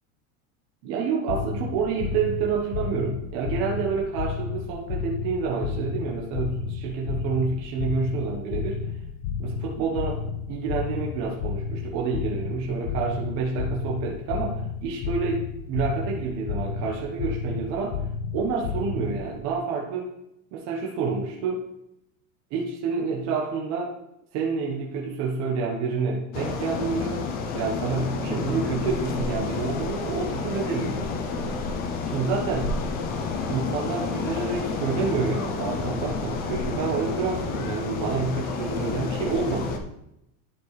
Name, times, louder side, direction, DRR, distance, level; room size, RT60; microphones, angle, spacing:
voice 1, 0.8-8.8 9.4-18.0 18.3-20.1 20.5-21.7 22.5-23.9 24.3-27.2 27.5-31.6 32.0-32.7 33.5-39.8, right 5 dB, 40° right, -2 dB, 1.1 m, -28 dB
sound 1, 1.3-19.4, left 6 dB, 75° left, 0.7 m, -32 dB
sound 2, 26.3-39.8, left 4 dB, 25° left, 0.4 m, -30 dB
11.5 x 4.5 x 3.2 m, 0.83 s
supercardioid pair, 155°, 43 cm